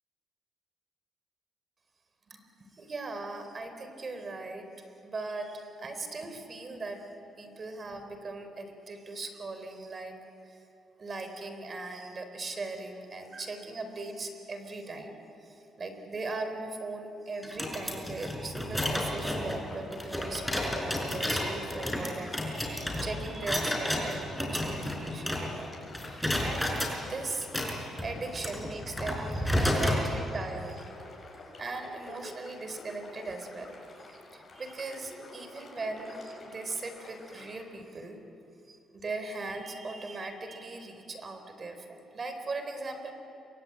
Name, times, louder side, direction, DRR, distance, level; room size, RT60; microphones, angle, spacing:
voice 1, 2.3-4.7 5.0-7.1 7.4-10.2 10.4-10.6 11.0-15.1 15.4-25.7 26.0-27.7 28.0-30.9 31.6-38.2 38.7-43.1, right 3 dB, 35° right, 7 dB, 4.2 m, -39 dB
sound 1, 17.4-25.7 25.9-26.9 27.4-30.0, left 1 dB, 5° left, 5.8 m, -31 dB
sound 2, 19.4-37.6, left 2 dB, 40° left, 7.8 m, -49 dB
27.5 x 24.5 x 8.9 m, 2.8 s
cardioid pair, 90°, 0 cm